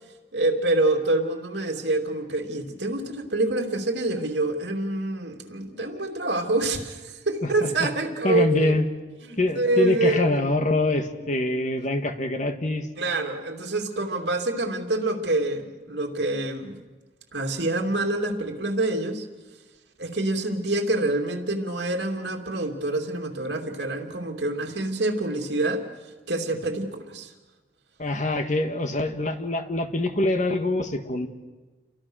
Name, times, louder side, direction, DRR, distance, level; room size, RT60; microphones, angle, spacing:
voice 1, 0.3-8.7 9.2-10.4 13.0-16.8 17.3-19.2 20.0-25.8 26.3-27.3, right 2 dB, 75° right, 3 dB, 2.8 m, -26 dB
voice 2, 7.4-7.9 8.2-8.9 9.4-12.9 28.0-31.3, left 2 dB, 45° left, 7 dB, 1.8 m, -25 dB
29.5 x 24.0 x 6.4 m, 1.2 s
head